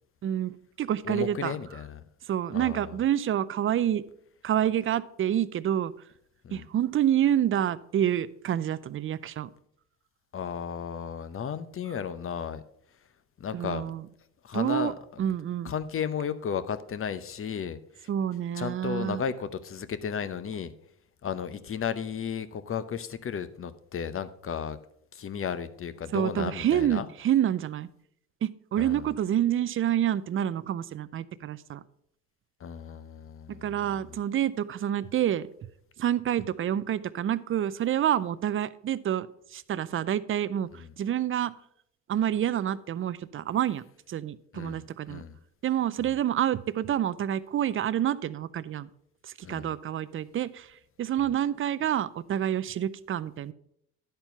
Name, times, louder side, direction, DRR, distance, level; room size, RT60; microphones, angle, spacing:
voice 1, 0.2-1.6 2.3-4.0 4.4-5.9 6.5-9.5 13.5-14.0 14.5-14.9 15.2-15.7 18.1-19.2 26.1-27.9 28.4-31.8 33.6-35.5 36.0-41.5 42.1-45.2 45.6-48.9 49.2-50.7 51.0-53.5, right 10 dB, 35° right, 17 dB, 0.4 m, -28 dB
voice 2, 1.0-2.0 2.5-2.9 6.4-6.7 10.3-12.6 13.4-13.9 14.4-15.3 15.6-18.1 18.5-20.7 21.2-24.8 25.1-27.1 28.8-29.1 32.6-33.8 44.5-45.4 46.0-46.1 49.4-49.7 51.2-51.3, left 7 dB, 35° left, 13 dB, 0.7 m, -34 dB
10.5 x 4.5 x 5.6 m, 0.73 s
supercardioid pair, 75°, 36 cm